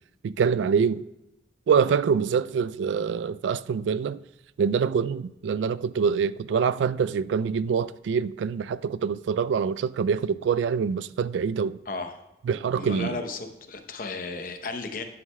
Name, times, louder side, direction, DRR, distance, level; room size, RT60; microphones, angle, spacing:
voice 1, 0.2-1.0 1.7-4.2 4.6-11.8 12.5-13.2, right 6 dB, 85° right, 0.3 m, -25 dB
voice 2, 11.9-12.2 12.8-15.0, left 3 dB, 50° left, 0.8 m, -34 dB
10.5 x 9.4 x 2.2 m
head